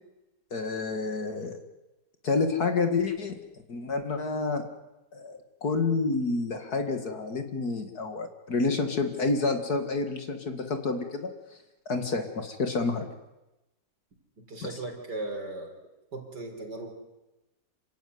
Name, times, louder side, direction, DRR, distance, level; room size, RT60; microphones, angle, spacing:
voice 1, 0.5-1.6 2.2-3.4 3.7-4.6 5.1-11.3 11.9-13.1 14.6-14.8, left 3 dB, 55° left, 7 dB, 2.4 m, -29 dB
voice 2, 14.4-15.7 16.1-16.9, right 2 dB, 60° right, 4 dB, 4.5 m, -37 dB
27.0 x 16.0 x 9.4 m, 1.0 s
omnidirectional pair, 2.1 m